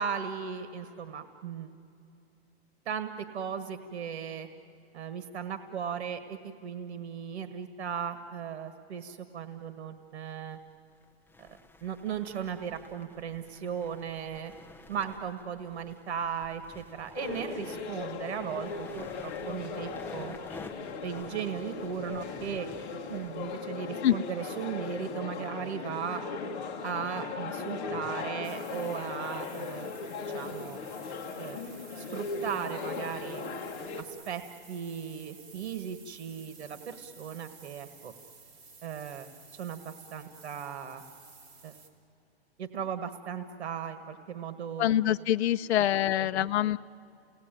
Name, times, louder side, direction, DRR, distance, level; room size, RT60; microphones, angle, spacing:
voice 1, 0.0-1.7 2.8-4.5 4.9-10.6 11.4-14.5 14.9-20.3 21.0-22.7 23.1-26.2 26.8-29.9 30.3-30.8 31.4-31.6 32.0-33.5 34.0-34.4 34.7-38.1 38.8-41.0 41.6-41.8 42.6-44.9 45.6-45.7 46.1-46.5, right 7 dB, 80° right, 9 dB, 1.6 m, -37 dB
sound 1, 9.6-9.7 10.5-23.6, left 3 dB, 5° left, 0.7 m, -51 dB
sound 2, 17.2-34.0, left 4 dB, 30° left, 1.9 m, -38 dB
sound 3, 28.4-41.9, right 4 dB, 30° right, 3.4 m, -53 dB
voice 2, 44.8-46.8, left 12 dB, 80° left, 10 dB, 0.6 m, -25 dB
30.0 x 19.0 x 9.1 m, 2.8 s
hypercardioid pair, 160°, 33 cm